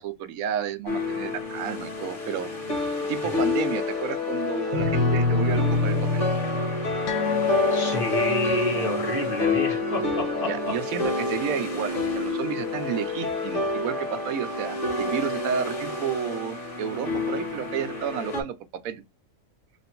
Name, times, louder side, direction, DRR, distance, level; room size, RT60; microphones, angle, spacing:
voice 1, 0.0-2.5 3.1-6.3 10.5-18.6 18.8-19.0, right 8 dB, 80° right, 1.0 m, -31 dB
sound 1, 0.9-18.4, left 2 dB, 60° left, 1.5 m, -29 dB
sound 2, 4.7-9.1, left 2 dB, 45° right, 0.5 m, -27 dB
sound 3, 7.1-13.9 14.2-14.4 14.7-14.8, left 8 dB, 90° left, 1.1 m, -33 dB
voice 2, 7.7-10.7, left 3 dB, 40° left, 1.2 m, -30 dB
3.1 x 2.5 x 4.3 m
omnidirectional pair, 1.4 m